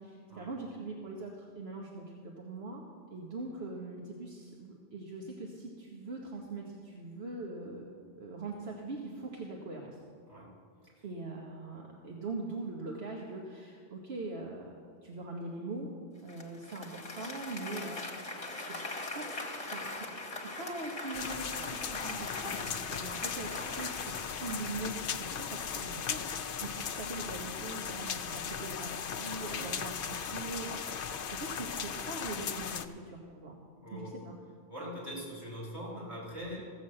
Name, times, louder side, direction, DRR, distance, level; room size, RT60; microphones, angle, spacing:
voice 1, 0.0-7.9 8.1-10.0 11.0-15.9 16.2-18.8 19.1-20.1 20.4-33.6 33.9-34.4, right 2 dB, 65° right, -1 dB, 1.3 m, -42 dB
Applause, 16.3-25.2, left 2 dB, 30° left, 1.2 m, -41 dB
sound 1, 21.1-32.9, left 7 dB, 60° left, 0.7 m, -37 dB
voice 2, 33.8-34.1 34.7-36.6, equal, 30° right, -5 dB, 4.1 m, -42 dB
15.0 x 6.3 x 7.5 m, 2.1 s
omnidirectional pair, 1.1 m